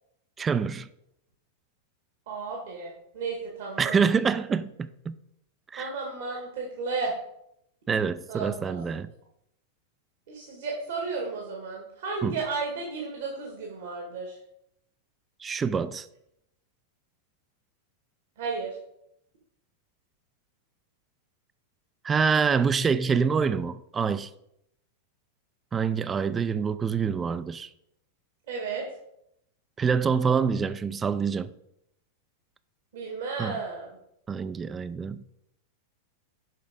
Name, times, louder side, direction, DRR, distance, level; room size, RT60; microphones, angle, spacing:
voice 1, 0.4-0.9 3.8-5.2 5.7-5.9 7.9-9.1 12.2-12.3 15.4-16.1 22.0-24.3 25.7-27.7 29.8-31.5 33.4-33.6 34.3-35.2, right 6 dB, 20° right, 0.4 m, -26 dB
voice 2, 2.3-4.0 5.8-7.1 8.3-8.9 10.3-14.4 18.4-18.7 28.5-28.8 32.9-33.9, right 4 dB, 70° right, 1.8 m, -33 dB
6.5 x 5.2 x 5.1 m
hypercardioid pair, 105°, 0 cm